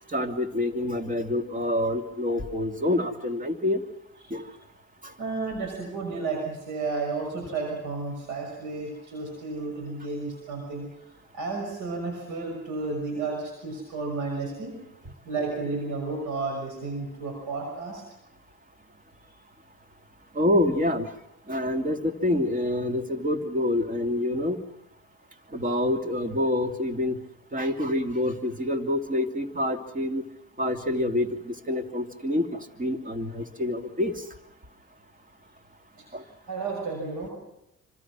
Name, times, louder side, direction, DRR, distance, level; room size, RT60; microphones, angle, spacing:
voice 1, 0.1-3.8 4.3-4.5 5.0-5.1 20.3-21.1 21.5-24.6 25.5-27.2 27.5-30.2 30.6-34.2 36.1-36.2, left 1 dB, 25° right, 5 dB, 2.7 m, -27 dB
voice 2, 5.2-10.9 11.3-14.7 15.2-18.0 36.0-37.3, right 3 dB, 85° right, 2 dB, 6.2 m, -32 dB
27.0 x 26.0 x 6.2 m, 0.82 s
cardioid pair, 90°, 30 cm